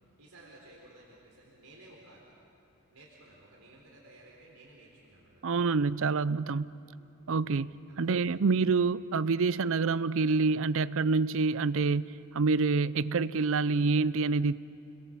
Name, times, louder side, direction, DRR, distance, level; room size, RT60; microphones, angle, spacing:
voice 1, 0.2-2.2 2.9-5.8 7.4-8.6, right 1 dB, 85° right, -3 dB, 4.0 m, -56 dB
voice 2, 5.4-6.7 7.3-14.6, right 4 dB, 60° right, 18 dB, 0.5 m, -27 dB
30.0 x 22.0 x 7.5 m, 2.8 s
head